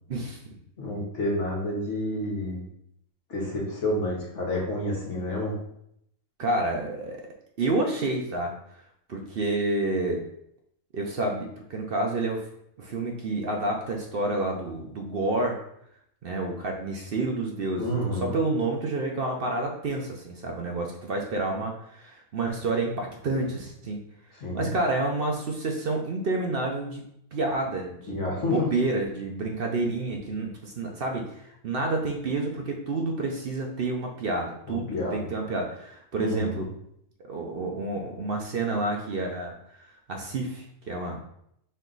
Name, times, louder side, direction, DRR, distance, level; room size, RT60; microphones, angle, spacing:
voice 1, 0.1-0.6 6.4-7.2 7.6-8.8 9.1-10.2 10.9-12.4 12.8-15.6 16.2-24.0 24.5-27.0 27.3-28.2 28.5-36.7 37.3-41.2, right 2 dB, 55° right, 1 dB, 0.7 m, -29 dB
voice 2, 0.8-2.6 3.3-5.5 17.8-18.4 24.4-24.7 28.1-28.7 34.7-35.3 36.2-36.6, left 1 dB, 60° left, -2 dB, 1.3 m, -29 dB
4.4 x 3.0 x 3.8 m, 0.74 s
omnidirectional pair, 1.5 m